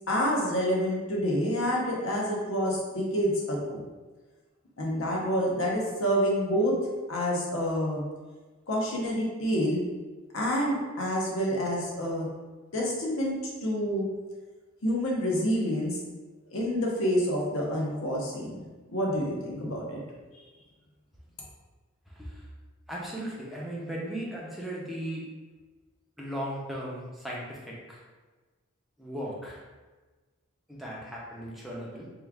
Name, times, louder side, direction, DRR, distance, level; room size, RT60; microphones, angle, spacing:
voice 1, 0.1-3.8 4.8-6.7 7.1-8.0 8.7-9.8 10.3-12.3 12.7-13.4 13.6-14.1 14.8-16.0 16.5-20.0, equal, 70° left, -3 dB, 0.8 m, -28 dB
voice 2, 22.1-22.5 22.9-25.2 26.2-28.0 29.0-29.6 30.7-32.1, equal, ahead, -5 dB, 0.5 m, -37 dB
3.1 x 2.3 x 3.4 m, 1.3 s
head